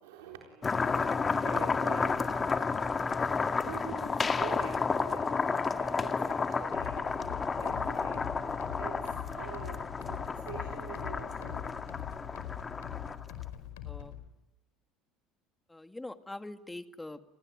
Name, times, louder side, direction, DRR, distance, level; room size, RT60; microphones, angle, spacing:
voice 1, 0.0-5.3 5.8-7.1 7.6-11.7, right 8 dB, 90° right, 2 dB, 3.9 m, -47 dB
sound 1, 0.6-13.4, left 4 dB, 25° left, 1.9 m, -31 dB
sound 2, 6.7-14.2, left 12 dB, 90° left, 5.0 m, -43 dB
voice 2, 15.7-17.2, left 2 dB, 10° left, 9 dB, 2.1 m, -43 dB
30.0 x 20.5 x 9.2 m, 0.92 s
supercardioid pair, 95°, 0 cm